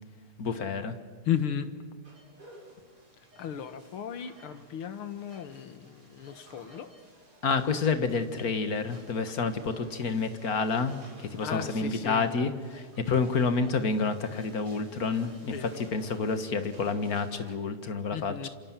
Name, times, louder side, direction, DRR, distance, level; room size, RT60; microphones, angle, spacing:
voice 1, 0.4-1.0 7.4-15.5 15.9-18.5, left 4 dB, 45° left, 10 dB, 1.8 m, -29 dB
voice 2, 1.2-1.7 3.4-6.9 11.4-12.3 15.4-15.9 18.1-18.5, left 9 dB, 75° left, 11 dB, 2.2 m, -35 dB
sound 1, 2.0-17.5, right 1 dB, 45° right, 5.0 m, -54 dB
27.0 x 27.0 x 7.5 m, 1.5 s
omnidirectional pair, 2.4 m